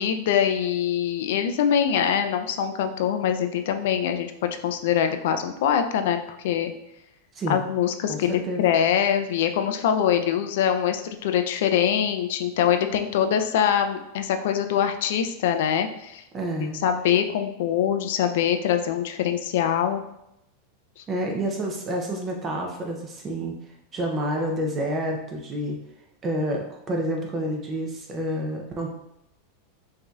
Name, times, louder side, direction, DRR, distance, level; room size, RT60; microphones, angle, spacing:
voice 1, 0.0-6.2 6.4-6.7 7.5-16.2 16.8-20.0 21.0-21.1, left 9 dB, 65° left, 7 dB, 0.4 m, -23 dB
voice 2, 8.1-8.6 16.3-16.8 21.1-23.5 23.9-25.8 26.2-28.9, right 1 dB, 20° right, 1 dB, 0.5 m, -28 dB
4.8 x 2.7 x 2.3 m, 0.82 s
supercardioid pair, 150°, 0 cm